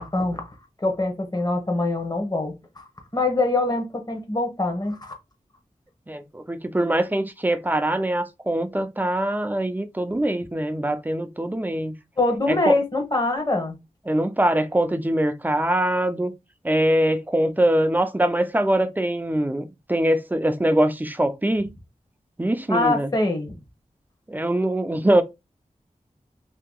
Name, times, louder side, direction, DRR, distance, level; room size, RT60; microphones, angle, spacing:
voice 1, 0.0-2.9 3.1-5.1 12.2-13.8 22.7-23.5, left 2 dB, 30° left, 1.1 m, -24 dB
voice 2, 6.1-11.9 12.5-12.8 14.1-16.3 16.6-21.7 22.4-23.1 24.3-25.2, right 1 dB, 15° right, 0.5 m, -23 dB
2.8 x 2.8 x 3.7 m
wide cardioid pair, 85°, 14 cm